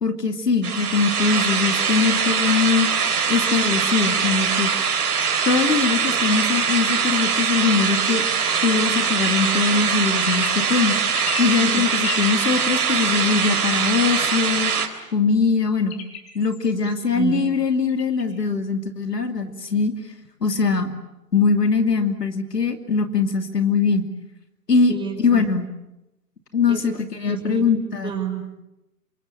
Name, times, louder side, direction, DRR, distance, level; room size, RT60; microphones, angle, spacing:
voice 1, 0.0-2.9 3.3-4.7 5.4-8.3 8.6-11.0 11.4-14.7 15.1-15.9 16.3-19.9 20.4-20.9 21.3-24.1 24.7-25.7 26.5-28.1, left 5 dB, 80° left, 7 dB, 2.8 m, -21 dB
sound 1, 0.6-14.9, right 6 dB, 65° right, 3.6 m, -22 dB
sound 2, 4.4-4.7 5.6-6.3 7.7-8.7 9.9-10.7 11.1-11.5 11.9-12.3 12.8-13.5 14.2-14.9 15.9-17.0 17.9-18.5, left 10 dB, 40° left, 4.9 m, -38 dB
voice 2, 11.4-12.1 16.8-17.5 24.9-25.4 26.7-26.9 27.3-27.6 28.0-28.6, right 5 dB, 10° right, 1 dB, 6.1 m, -30 dB
27.5 x 25.0 x 8.8 m, 0.93 s
figure-of-eight pair, 120°, 48 cm